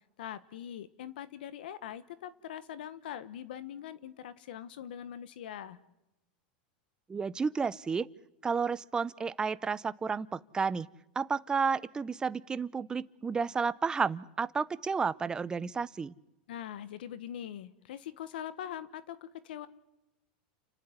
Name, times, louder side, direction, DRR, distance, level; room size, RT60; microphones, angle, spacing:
voice 1, 0.2-5.8 16.5-19.7, left 10 dB, 80° left, 14 dB, 1.3 m, -42 dB
voice 2, 7.1-8.1 8.4-10.9 11.2-16.1, right 5 dB, 15° right, 16 dB, 0.7 m, -31 dB
29.5 x 10.5 x 9.8 m, 0.92 s
supercardioid pair, 130°, 5 cm